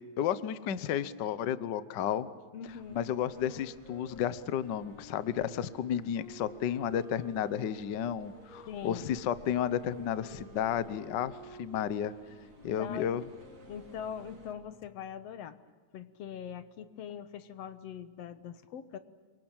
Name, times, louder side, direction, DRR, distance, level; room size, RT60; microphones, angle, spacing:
voice 1, 0.2-2.3 2.9-12.1 12.6-13.2, left 9 dB, 80° left, 15 dB, 0.9 m, -32 dB
voice 2, 2.5-3.0 8.7-9.1 12.7-13.1 13.7-15.6 15.9-19.0, left 8 dB, 65° left, 12 dB, 2.2 m, -42 dB
sound 1, 2.6-14.5, right 3 dB, 75° right, 5.2 m, -57 dB
sound 2, 3.1-8.7 9.4-14.9, left 1 dB, 30° left, 2.5 m, -53 dB
28.0 x 24.0 x 8.9 m, 1.5 s
omnidirectional pair, 3.3 m